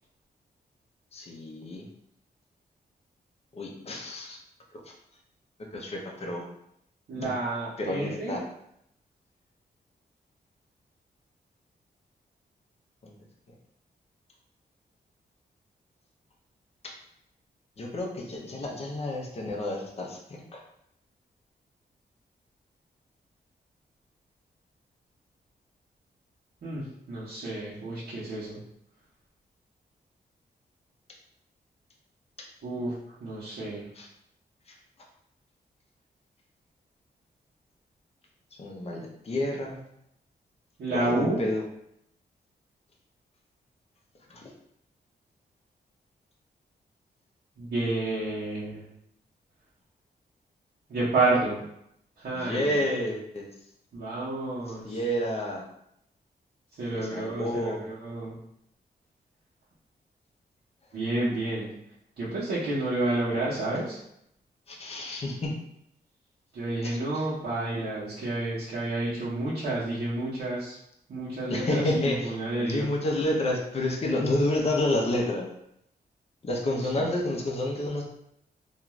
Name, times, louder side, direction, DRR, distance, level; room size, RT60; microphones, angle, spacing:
voice 1, 1.1-1.9 3.5-4.4 5.7-6.4 7.1-7.3 7.8-8.4 13.0-13.2 17.8-20.6 34.0-34.1 38.6-39.8 40.9-41.6 44.3-44.5 52.3-53.5 54.7-55.7 56.9-57.8 64.7-65.5 66.8-67.2 71.5-75.5 76.4-78.0, left 1 dB, 40° left, 0 dB, 0.6 m, -30 dB
voice 2, 7.1-8.4 26.6-28.6 32.6-32.9 33.2-33.8 40.8-41.4 47.6-48.8 50.9-51.6 52.2-52.8 53.9-55.0 56.8-58.3 60.9-61.7 62.2-64.0 66.5-70.8 71.1-72.9 76.9-77.1, right 2 dB, 75° right, -11 dB, 0.9 m, -30 dB
2.4 x 2.3 x 3.0 m, 0.76 s
wide cardioid pair, 130°, 17 cm